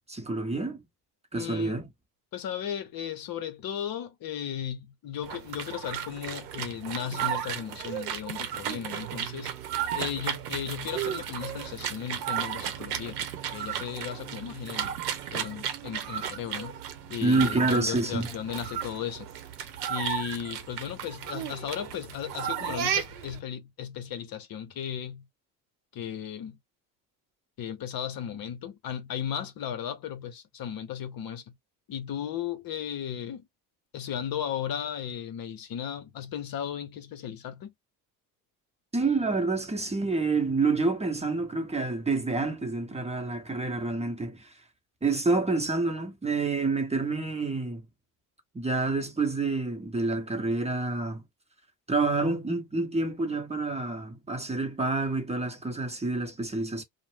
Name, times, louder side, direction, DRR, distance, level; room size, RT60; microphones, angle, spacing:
voice 1, 0.1-0.8 1.3-1.9 17.2-18.3 38.9-44.5 45.0-47.8 48.5-51.2 51.9-56.8, right 3 dB, 15° right, 0.9 m, -28 dB
voice 2, 1.3-1.8 2.3-9.5 9.9-13.2 13.5-14.9 15.3-16.8 17.1-19.3 19.9-25.3 25.9-26.6 27.6-31.5 31.9-33.4 33.9-37.7, left 9 dB, 50° left, 0.8 m, -35 dB
sound 1, 5.2-23.4, right 9 dB, 90° right, 0.8 m, -34 dB
2.6 x 2.1 x 3.2 m
hypercardioid pair, 70°, 46 cm